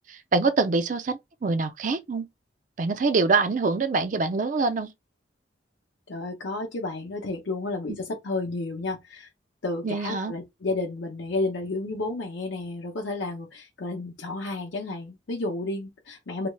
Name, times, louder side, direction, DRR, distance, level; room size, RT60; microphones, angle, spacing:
voice 1, 0.1-2.3 2.8-4.9 9.8-10.3, right 3 dB, 45° right, 0.4 m, -25 dB
voice 2, 6.1-9.3 9.6-16.5, left 2 dB, 80° left, 0.7 m, -31 dB
3.1 x 2.8 x 2.2 m
head